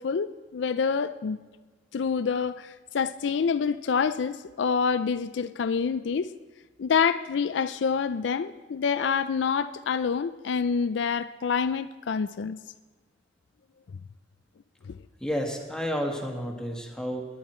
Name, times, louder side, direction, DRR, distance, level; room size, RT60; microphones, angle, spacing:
voice 1, 0.0-1.4 1.9-6.3 6.8-12.6 14.9-15.0, left 6 dB, 65° left, 13 dB, 0.4 m, -27 dB
voice 2, 15.2-17.3, equal, 5° left, 2 dB, 1.6 m, -31 dB
20.0 x 11.0 x 4.4 m, 1.4 s
head